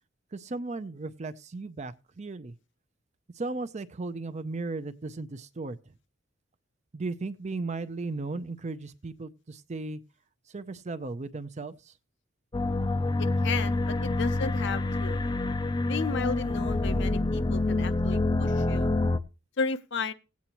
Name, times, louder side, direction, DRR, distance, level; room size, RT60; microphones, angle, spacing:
voice 1, 0.3-2.5 3.3-5.9 6.9-10.0 10.5-11.9, right 3 dB, 35° right, 0.5 m, -36 dB
sound 1, 12.5-19.2, left 2 dB, 20° left, 0.5 m, -27 dB
voice 2, 13.2-15.2 15.9-18.9 19.6-20.1, left 5 dB, 60° left, 0.7 m, -34 dB
17.0 x 8.4 x 3.0 m
head